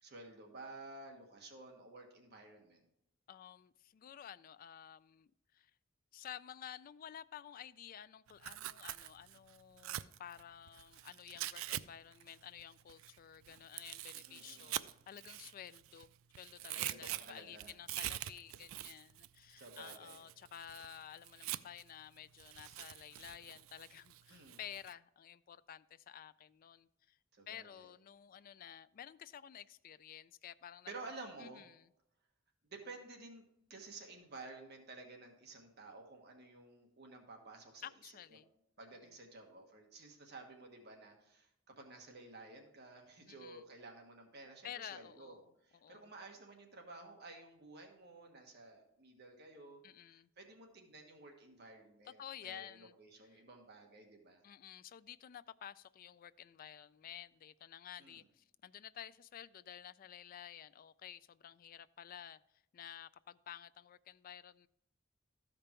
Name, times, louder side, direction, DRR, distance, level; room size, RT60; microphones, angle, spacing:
voice 1, 0.0-2.8 14.2-14.8 16.8-17.7 19.6-20.2 24.3-24.6 27.3-27.9 30.9-31.6 32.7-33.4 33.7-38.1 38.8-41.5 41.8-45.4 45.6-54.4 58.0-58.2, right 3 dB, 55° right, 1.4 m, -53 dB
voice 2, 3.3-5.7 6.1-14.8 15.1-27.2 27.5-30.9 31.4-31.9 37.8-38.5 43.3-43.6 44.6-46.1 49.8-50.3 52.2-52.9 53.3-53.4 54.4-62.4 62.7-64.7, left 10 dB, 45° left, 0.3 m, -52 dB
Tearing, 8.3-11.8 12.1-16.0 16.3-21.9 22.4-24.9, right 14 dB, 90° right, 0.3 m, -45 dB
13.5 x 5.2 x 4.4 m
head